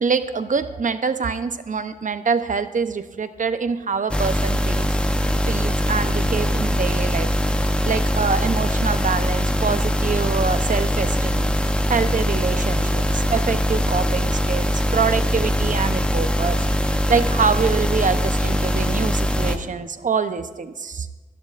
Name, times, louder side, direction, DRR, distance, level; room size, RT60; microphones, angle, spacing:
voice 1, 0.0-5.0 5.5-7.3 7.6-11.5 11.9-21.1, right 5 dB, 65° right, 10 dB, 0.7 m, -25 dB
sound 1, 4.1-19.6, equal, 5° left, 0.9 m, -22 dB
24.0 x 11.5 x 2.5 m, 1.2 s
wide cardioid pair, 115°, 14 cm